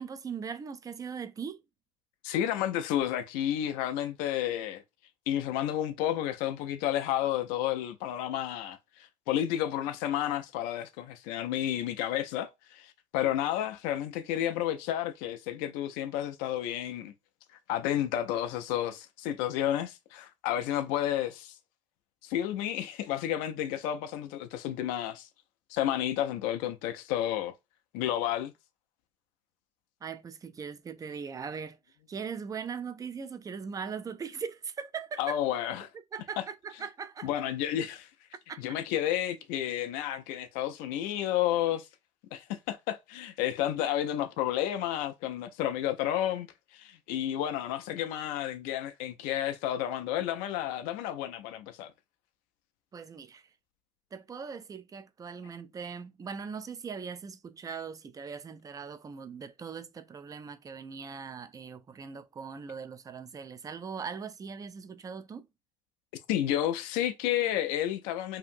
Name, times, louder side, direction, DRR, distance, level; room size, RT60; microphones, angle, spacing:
voice 1, 0.0-1.6 30.0-31.8 32.1-35.4 36.1-37.3 38.5-38.6 52.9-53.5 54.1-65.5, right 6 dB, 20° right, 0.4 m, -40 dB
voice 2, 2.2-4.8 5.3-17.1 17.7-21.6 22.2-25.3 25.7-27.5 27.9-28.5 35.2-35.9 37.2-38.1 38.6-41.9 42.3-51.9 66.3-68.4, left 11 dB, 60° left, 0.4 m, -31 dB
2.7 x 2.4 x 2.5 m
hypercardioid pair, 65°, 16 cm